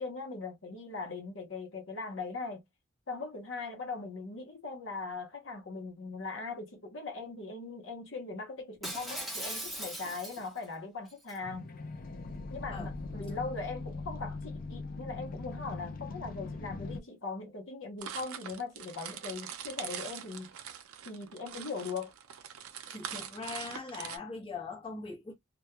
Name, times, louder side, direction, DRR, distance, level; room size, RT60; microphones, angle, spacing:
voice 1, 0.0-2.6 3.1-11.7 12.5-20.5 21.0-22.1, left 4 dB, 60° left, 0.8 m, -40 dB
Shatter, 8.8-10.6 11.1-11.4, right 1 dB, ahead, 0.9 m, -39 dB
sound 1, 11.4-17.0, left 3 dB, 40° left, 0.4 m, -41 dB
sound 2, 18.0-24.2, right 9 dB, 85° right, 0.4 m, -43 dB
voice 2, 22.9-25.3, left 4 dB, 25° left, 0.9 m, -41 dB
2.2 x 2.2 x 2.9 m
head